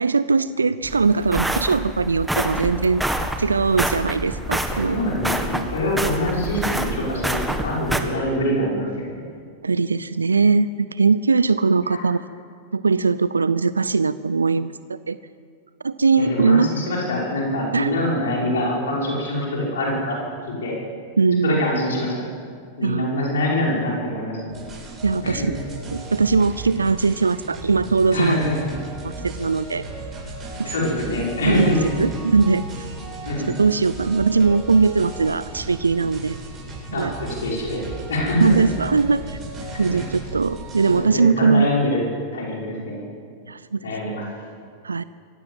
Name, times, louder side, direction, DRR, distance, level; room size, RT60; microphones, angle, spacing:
voice 1, 0.0-3.0 3.4-5.0 9.6-12.2 12.7-15.2 15.8-16.7 17.7-18.0 21.2-21.6 22.8-23.1 25.0-25.5 25.9-28.4 29.0-29.8 30.6-30.7 31.5-31.7 32.0-32.6 33.5-36.4 36.9-37.1 38.4-39.4 39.8-41.7 43.5-43.9 44.8-45.0, right 4 dB, 85° right, 16 dB, 0.4 m, -20 dB
sound 1, 0.8-8.0, right 1 dB, 5° right, 1.8 m, -27 dB
voice 2, 4.7-9.2 11.8-12.1 16.1-20.2 20.6-20.8 21.4-22.2 22.8-24.4 25.2-25.5 28.1-28.7 30.6-31.9 33.2-33.5 36.9-37.8 38.1-38.5 39.7-40.0 40.8-42.1 42.3-43.0 43.8-44.3, left 1 dB, 75° left, -3 dB, 5.7 m, -24 dB
sound 2, 24.5-41.0, right 2 dB, 25° right, 7.7 m, -36 dB
23.0 x 15.5 x 7.7 m, 2.2 s
figure-of-eight pair, 95°, 0 cm